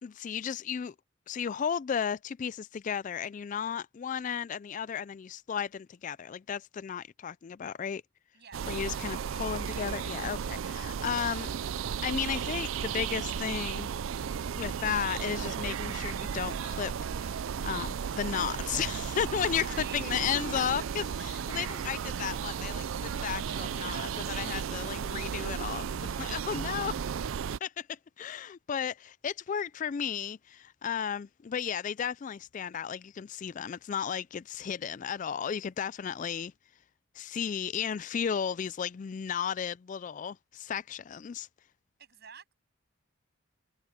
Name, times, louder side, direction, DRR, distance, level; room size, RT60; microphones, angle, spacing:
voice 1, 0.0-0.9 1.3-8.0 8.7-11.5 12.0-13.9 14.6-27.0 27.6-36.5 37.2-41.5, left 7 dB, 40° left, 0.3 m, -34 dB
voice 2, 8.3-9.8 19.6-20.7 42.0-42.5, right 7 dB, 55° right, 7.8 m, -50 dB
sound 1, 8.5-27.6, right 7 dB, 75° right, 0.4 m, -34 dB
head